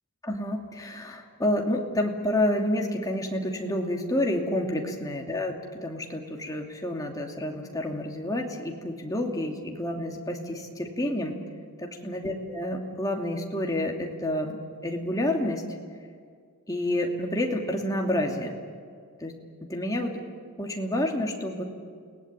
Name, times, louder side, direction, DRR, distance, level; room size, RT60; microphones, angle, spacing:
voice 1, 0.2-11.4 11.8-15.6 16.7-18.6 19.2-19.3 19.6-20.2 20.6-21.6, left 1 dB, 15° left, 1 dB, 2.7 m, -29 dB
29.5 x 19.0 x 9.0 m, 2.1 s
head